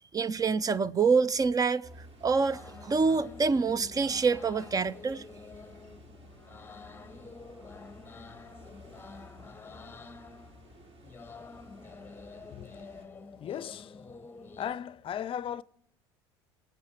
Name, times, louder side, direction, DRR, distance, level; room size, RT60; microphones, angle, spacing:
voice 1, 0.1-1.9 2.2-5.2, right 4 dB, 25° right, 0.6 m, -26 dB
sound 1, 1.8-13.1, equal, 45° right, 3.7 m, -53 dB
sound 2, 1.9-14.7, left 4 dB, 15° left, 0.9 m, -49 dB
voice 2, 12.5-12.9 13.4-14.2 14.6-15.6, left 9 dB, 40° left, 0.5 m, -37 dB
23.0 x 8.1 x 4.8 m
hypercardioid pair, 70°, 14 cm